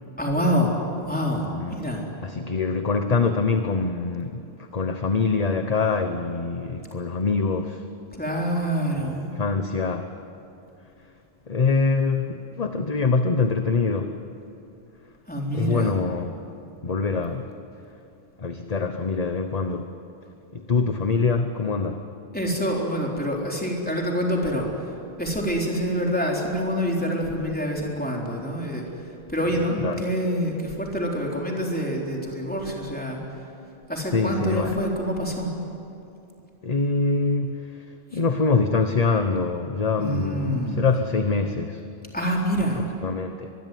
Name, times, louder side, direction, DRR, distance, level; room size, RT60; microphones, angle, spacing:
voice 1, 0.2-0.8 1.0-1.5 1.7-2.0 8.2-9.3 15.3-16.0 22.3-24.7 25.2-28.9 29.3-33.2 33.9-35.6 40.0-40.9 42.1-42.9, equal, 10° left, -1 dB, 4.0 m, -26 dB
voice 2, 1.4-1.9 2.2-7.9 9.2-10.1 11.5-14.2 15.5-16.4 16.8-17.5 18.4-19.9 20.5-22.1 29.5-30.0 34.1-34.8 36.6-37.8 38.1-41.8 42.7-43.5, left 4 dB, 40° left, 7 dB, 1.0 m, -24 dB
23.5 x 22.0 x 9.3 m, 2.8 s
omnidirectional pair, 1.1 m